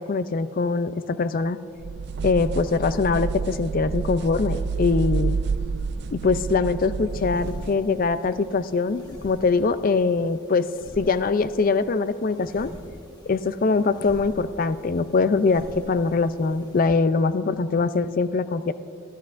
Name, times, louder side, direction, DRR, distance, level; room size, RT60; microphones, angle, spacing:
voice 1, 0.0-1.6 2.2-5.4 6.1-10.7 11.0-12.7 13.3-18.7, left 4 dB, 40° left, 13 dB, 0.4 m, -23 dB
sound 1, 1.8-7.8, right 4 dB, 55° right, 0.4 m, -29 dB
sound 2, 7.1-16.9, equal, 20° left, 1.4 m, -46 dB
24.0 x 14.0 x 2.5 m, 2.6 s
head